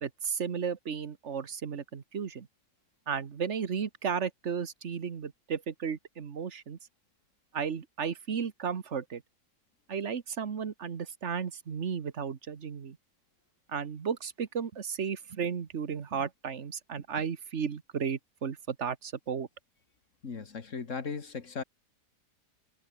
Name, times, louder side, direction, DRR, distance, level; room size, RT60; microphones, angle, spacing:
voice 1, 0.0-2.5 3.1-6.8 7.5-9.2 9.9-13.0 13.7-19.5, right 6 dB, 45° right, 1.5 m, -34 dB
voice 2, 20.2-21.6, left 5 dB, 50° left, 2.1 m, -37 dB
omnidirectional pair, 1.8 m